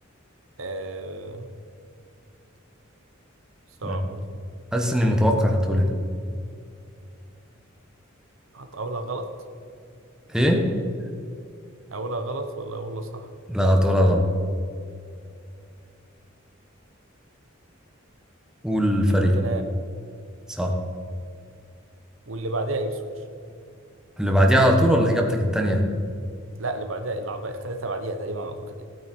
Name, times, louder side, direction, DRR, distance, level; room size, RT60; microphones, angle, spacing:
voice 1, 0.6-1.5 3.8-4.4 8.5-9.3 11.9-13.3 19.3-19.6 22.3-23.2 26.6-28.8, right 2 dB, 75° right, 7 dB, 1.1 m, -31 dB
voice 2, 4.7-5.9 10.3-10.6 13.5-14.2 18.6-19.3 20.6-20.7 24.2-25.8, equal, 5° right, 1 dB, 1.4 m, -20 dB
17.0 x 9.3 x 4.6 m, 2.4 s
head